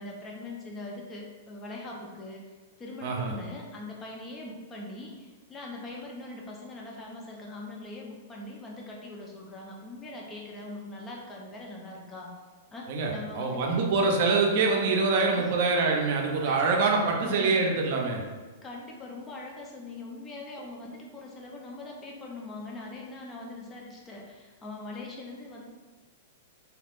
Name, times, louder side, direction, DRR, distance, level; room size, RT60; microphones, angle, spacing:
voice 1, 0.0-2.4 2.8-12.3 12.7-13.9 15.4-15.5 16.4-17.6 18.6-25.6, left 2 dB, 20° left, -2 dB, 0.6 m, -42 dB
voice 2, 3.0-3.3 12.9-18.2, right 4 dB, 55° right, 0 dB, 0.6 m, -25 dB
3.3 x 2.8 x 2.5 m, 1.3 s
figure-of-eight pair, 105°, 0 cm